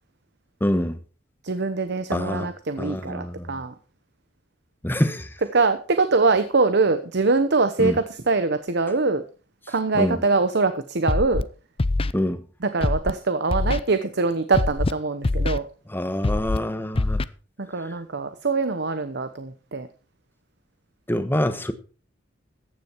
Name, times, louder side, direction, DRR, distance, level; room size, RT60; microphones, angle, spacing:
voice 1, 0.6-1.0 2.1-2.5 2.8-3.5 4.8-5.3 7.8-8.0 9.9-10.2 12.1-12.4 15.9-17.2 21.1-21.7, left 1 dB, 10° left, 1.2 m, -25 dB
voice 2, 1.4-3.7 5.5-9.2 9.7-11.4 12.6-15.7 17.6-19.9, right 3 dB, 60° right, 1.0 m, -23 dB
Scratching (performance technique), 11.1-11.4 11.8-12.1 12.8-13.1 13.5-13.8 14.5-14.9 15.2-15.6 16.2-16.6 17.0-17.3, left 2 dB, 30° left, 0.5 m, -23 dB
14.5 x 9.6 x 4.6 m
head